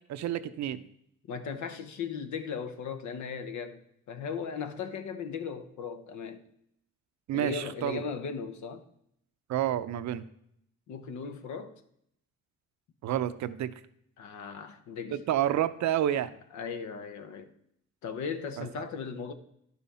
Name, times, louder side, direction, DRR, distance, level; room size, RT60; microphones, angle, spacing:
voice 1, 0.1-0.8 7.3-8.0 9.5-10.3 13.0-13.7 15.1-16.3 18.6-18.8, right 11 dB, 65° right, 0.6 m, -29 dB
voice 2, 1.3-6.4 7.3-8.8 10.9-11.8 14.2-15.2 16.5-17.5 18.0-19.3, left 6 dB, 75° left, 1.0 m, -37 dB
10.5 x 5.6 x 4.2 m
cardioid pair, 90°, 30 cm